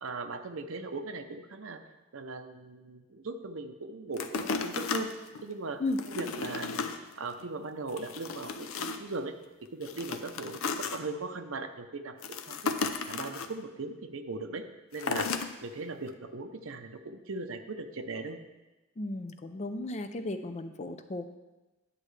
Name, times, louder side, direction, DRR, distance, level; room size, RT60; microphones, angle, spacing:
voice 1, 0.0-1.8 2.1-5.1 5.4-5.8 6.1-6.9 7.2-9.3 9.7-12.7 13.0-14.7 14.9-18.4, right 3 dB, 80° right, 7 dB, 0.7 m, -39 dB
sound 1, 4.2-5.4 5.9-7.0 7.4-7.5 7.9-9.1 9.8-11.0 12.2-13.5 14.9-15.5 16.1-16.2, left 4 dB, 90° left, 0.6 m, -34 dB
voice 2, 19.0-21.4, left 2 dB, 35° left, 9 dB, 0.5 m, -35 dB
10.0 x 7.5 x 3.3 m, 1.1 s
head